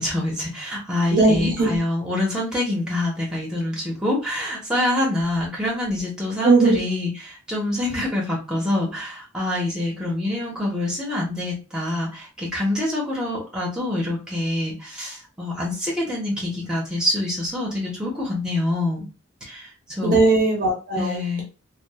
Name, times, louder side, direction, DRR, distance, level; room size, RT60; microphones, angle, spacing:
voice 1, 0.0-19.0 19.4-20.2 20.9-21.4, left 1 dB, 5° right, -4 dB, 0.8 m, -26 dB
voice 2, 1.1-1.8 6.4-6.8 20.0-21.2, right 3 dB, 45° right, 0 dB, 0.7 m, -18 dB
3.0 x 2.1 x 2.2 m, 0.33 s
head